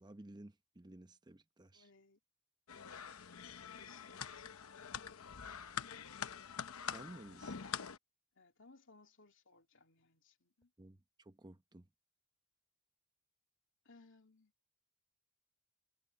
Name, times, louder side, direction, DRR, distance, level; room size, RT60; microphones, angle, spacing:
voice 1, 0.0-1.9 6.8-7.6 10.8-11.9, right 1 dB, 20° right, 0.8 m, -55 dB
voice 2, 1.7-2.2 3.7-5.3 8.3-10.7 13.8-14.5, left 3 dB, 60° left, 2.8 m, -64 dB
sound 1, 2.7-8.0, left 7 dB, 80° left, 0.9 m, -45 dB
head